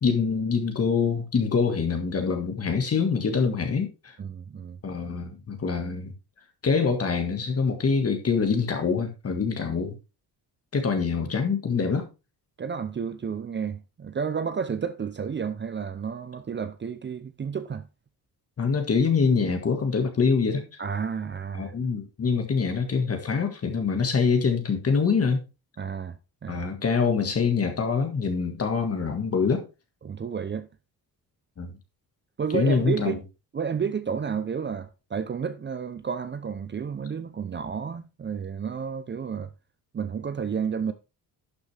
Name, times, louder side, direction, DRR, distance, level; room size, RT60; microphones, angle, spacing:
voice 1, 0.0-4.2 4.8-6.1 6.6-10.0 10.7-12.1 18.6-20.8 21.5-25.4 26.5-29.6 31.6-31.7 32.5-33.2, left 5 dB, 40° left, 1.8 m, -25 dB
voice 2, 4.2-4.8 12.6-17.9 20.8-21.7 25.8-26.2 26.4-26.7 30.0-30.7 32.4-33.2 33.5-39.5 39.9-40.9, right 6 dB, 30° right, 0.6 m, -31 dB
11.5 x 6.1 x 3.4 m
cardioid pair, 110°, 37 cm